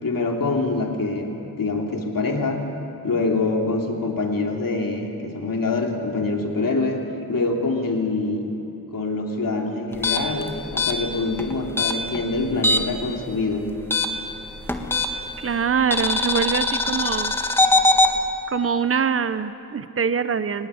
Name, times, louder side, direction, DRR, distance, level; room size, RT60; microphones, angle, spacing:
voice 1, 0.0-2.6 3.0-8.5 8.9-13.7, left 3 dB, 70° left, 1 dB, 3.2 m, -25 dB
sound 1, 9.9-13.1 13.3-15.4 15.9-18.1, left 2 dB, 5° left, 1.8 m, -21 dB
voice 2, 15.4-17.3 18.5-20.7, right 6 dB, 40° right, 12 dB, 0.8 m, -24 dB
24.0 x 20.0 x 9.9 m, 2.9 s
wide cardioid pair, 115°, 35 cm